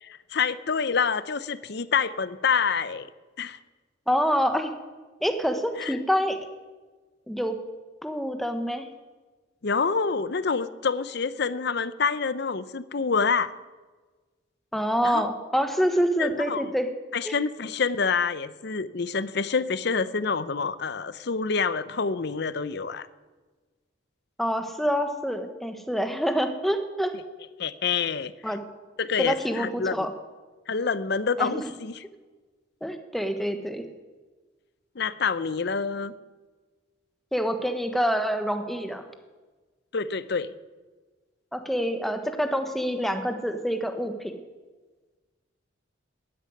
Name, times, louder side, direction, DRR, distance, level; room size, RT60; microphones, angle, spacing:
voice 1, 0.0-3.1 3.4-3.6 5.8-5.9 9.6-13.5 15.0-15.3 16.2-16.7 17.1-23.1 27.6-28.3 29.0-30.1 30.7-32.0 35.0-36.1 39.9-40.5, left 5 dB, 55° left, 15 dB, 0.6 m, -27 dB
voice 2, 4.1-4.7 5.2-6.4 7.3-7.6 8.0-8.9 14.7-16.9 17.2-17.4 24.4-27.1 28.4-28.6 29.2-30.1 31.4-31.6 32.8-33.9 37.3-39.0 41.5-44.3, equal, ahead, 7 dB, 1.1 m, -26 dB
13.0 x 10.5 x 9.5 m, 1.3 s
head